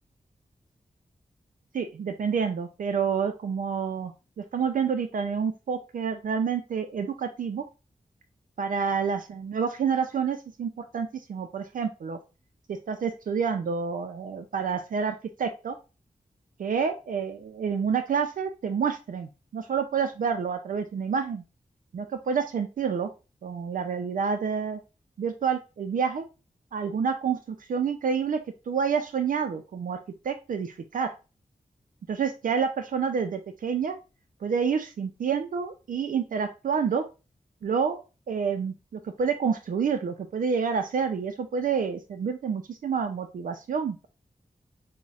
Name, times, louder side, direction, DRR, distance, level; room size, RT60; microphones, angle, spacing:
voice 1, 1.7-7.6 8.6-12.2 12.7-15.8 16.6-21.4 21.9-23.1 23.4-24.8 25.2-26.2 26.7-28.4 28.7-30.0 30.2-31.1 32.1-34.0 34.4-37.0 37.6-38.0 38.3-44.1, right 6 dB, 70° right, 6 dB, 0.4 m, -28 dB
5.4 x 2.1 x 2.3 m, 0.29 s
cardioid pair, 55°, 14 cm